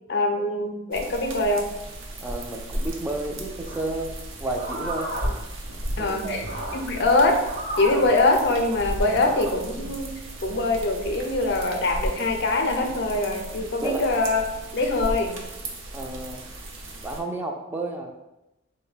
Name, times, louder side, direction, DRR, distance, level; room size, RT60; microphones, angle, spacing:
voice 1, 0.1-1.7 6.0-6.5 6.7-7.4 7.8-10.1 10.4-14.4 14.7-15.4, left 2 dB, 60° left, 4 dB, 0.5 m, -23 dB
sound 1, 0.9-17.2, right 1 dB, 85° right, 0.6 m, -36 dB
voice 2, 2.2-4.1 4.4-5.2 6.0-6.4 13.8-14.0 15.9-16.5 17.0-18.1, right 2 dB, 10° right, 1 dB, 0.3 m, -31 dB
sound 2, 3.7-12.5, right 1 dB, 60° right, 1.0 m, -35 dB
3.7 x 2.1 x 4.0 m, 0.93 s
head